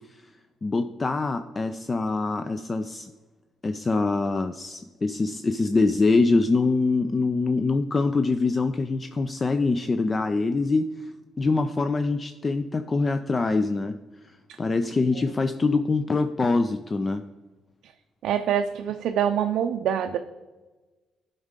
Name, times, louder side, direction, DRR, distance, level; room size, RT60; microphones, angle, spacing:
voice 1, 0.6-3.1 3.6-14.0 14.2-17.2, left 3 dB, 30° left, 9 dB, 0.4 m, -24 dB
voice 2, 18.2-20.2, right 9 dB, 80° right, 5 dB, 0.4 m, -25 dB
11.5 x 5.4 x 3.7 m, 1.2 s
cardioid pair, 90°, 0 cm